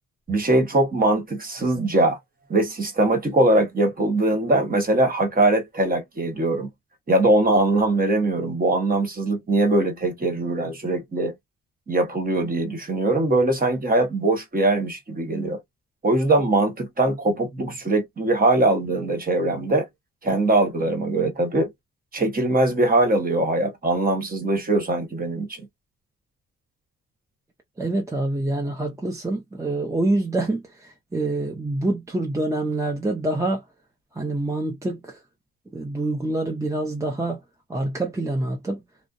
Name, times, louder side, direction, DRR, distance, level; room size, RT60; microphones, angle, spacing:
voice 1, 0.3-2.2 2.5-6.7 7.1-11.3 11.9-15.6 16.0-19.9 20.2-21.7 22.1-25.7, right 2 dB, 30° right, 1.2 m, -21 dB
voice 2, 27.8-33.6 34.1-35.2 35.7-37.4 37.7-38.8, right 2 dB, 10° right, 0.7 m, -26 dB
2.5 x 2.0 x 2.4 m
cardioid pair, 90°, 30 cm